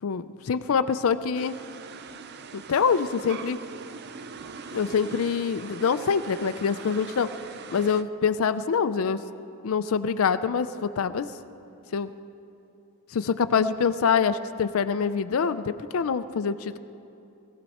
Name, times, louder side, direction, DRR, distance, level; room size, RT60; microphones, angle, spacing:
voice 1, 0.0-1.6 2.5-3.6 4.7-7.3 7.7-9.2 9.6-11.3 11.9-12.1 13.1-16.8, left 6 dB, 65° left, 11 dB, 0.4 m, -25 dB
sound 1, 1.3-8.0, right 5 dB, 45° right, 0.5 m, -42 dB
19.0 x 15.5 x 4.2 m, 2.7 s
head